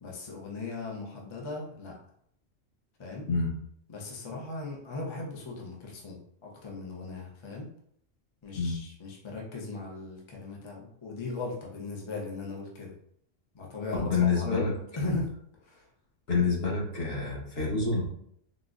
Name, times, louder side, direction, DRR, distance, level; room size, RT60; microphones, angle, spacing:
voice 1, 0.0-2.0 3.0-3.3 3.9-7.7 8.4-13.0 13.5-15.3 15.6-15.9, left 3 dB, 40° left, -2 dB, 0.4 m, -38 dB
voice 2, 14.0-14.7 16.3-18.0, left 4 dB, 55° left, -4 dB, 1.2 m, -27 dB
3.8 x 2.2 x 2.4 m, 0.69 s
omnidirectional pair, 1.3 m